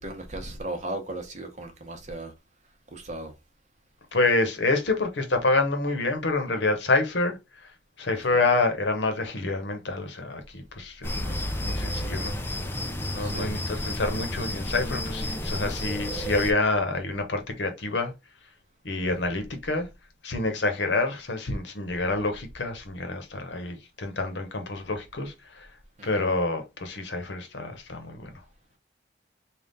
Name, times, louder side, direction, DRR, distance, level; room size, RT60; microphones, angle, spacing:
voice 1, 0.0-2.3 2.9-3.3 13.2-13.6 26.0-26.2, right 2 dB, 40° right, 0.9 m, -36 dB
voice 2, 4.1-7.7 8.0-12.4 13.1-18.1 18.8-19.9 20.2-25.7 26.0-28.3, left 2 dB, 70° left, 0.9 m, -27 dB
sound 1, 11.0-16.5, left 1 dB, 10° left, 0.4 m, -31 dB
3.5 x 2.4 x 3.9 m
head